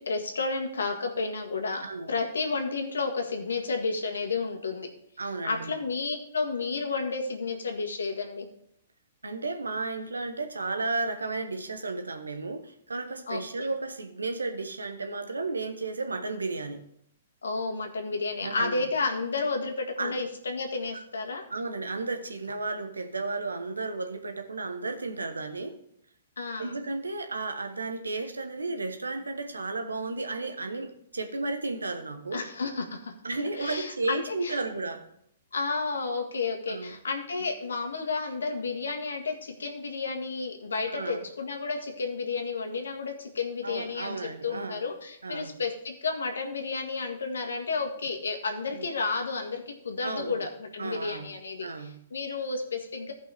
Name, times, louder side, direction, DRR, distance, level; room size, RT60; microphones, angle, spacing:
voice 1, 0.0-4.9 5.4-8.5 13.3-13.4 17.4-21.4 26.4-26.8 32.3-33.1 33.6-34.6 35.5-53.1, left 4 dB, 80° left, 4 dB, 1.7 m, -31 dB
voice 2, 5.2-5.7 9.2-16.8 18.4-18.8 20.0-20.1 21.5-25.8 26.6-32.4 33.2-35.0 36.7-36.9 40.9-41.2 43.6-44.8 45.2-45.5 48.7-48.9 50.0-50.4 50.8-51.3 51.6-52.0, right 3 dB, 90° right, 7 dB, 1.1 m, -33 dB
15.5 x 5.4 x 3.5 m, 0.70 s
hypercardioid pair, 120°, 0 cm